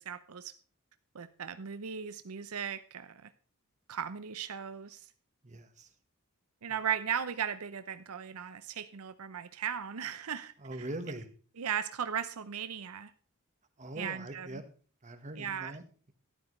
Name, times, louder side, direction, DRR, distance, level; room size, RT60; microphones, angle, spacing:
voice 1, 0.1-0.5 1.1-3.3 3.9-5.1 6.6-10.5 10.8-10.9 11.6-13.1 14.0-14.6 15.4-15.8, right 8 dB, 80° right, 12 dB, 0.6 m, -37 dB
voice 2, 5.4-5.9 6.7-6.8 10.6-11.3 13.8-14.6 15.0-16.1, right 1 dB, 35° right, 7 dB, 1.3 m, -42 dB
13.0 x 11.0 x 3.2 m, 0.39 s
head